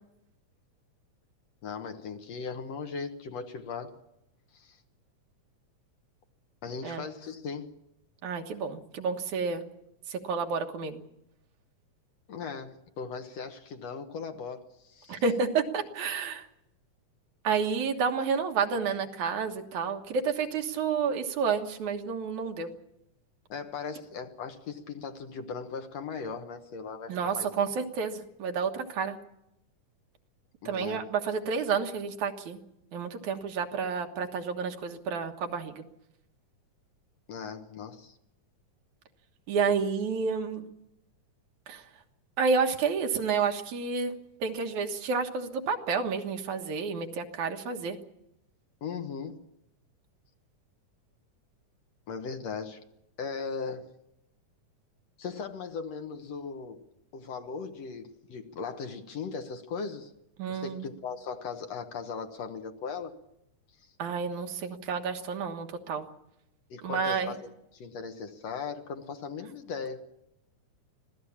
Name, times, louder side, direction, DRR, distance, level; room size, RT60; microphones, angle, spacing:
voice 1, 1.6-4.0 4.5-4.8 6.6-7.7 12.3-15.2 23.5-27.5 30.6-31.0 37.3-38.2 48.8-49.4 52.1-52.8 53.2-53.9 55.2-56.8 57.1-60.1 60.5-63.1 66.7-70.0, left 5 dB, 60° left, 6 dB, 2.3 m, -38 dB
voice 2, 8.2-9.6 10.1-11.0 15.1-16.5 17.4-22.7 27.1-29.2 30.7-32.6 32.9-35.8 39.5-40.7 41.7-41.8 42.4-44.2 44.4-48.0 60.4-60.9 64.0-66.1 66.8-67.3, right 5 dB, 70° right, 4 dB, 2.8 m, -30 dB
25.0 x 17.0 x 7.3 m, 0.83 s
omnidirectional pair, 3.5 m